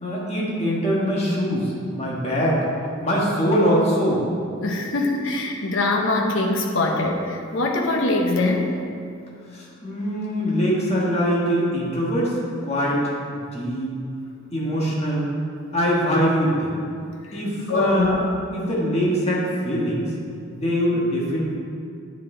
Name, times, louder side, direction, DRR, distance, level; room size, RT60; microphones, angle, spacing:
voice 1, 0.0-2.6 3.0-4.2 9.5-12.4 12.6-13.0 13.3-13.9 14.5-15.2 15.7-16.7 17.3-18.2 18.5-20.1 20.5-21.4, equal, 30° left, -5 dB, 1.5 m, -23 dB
voice 2, 4.6-8.7 17.7-18.1, left 2 dB, 65° left, 1 dB, 0.8 m, -22 dB
8.2 x 6.7 x 3.8 m, 2.4 s
head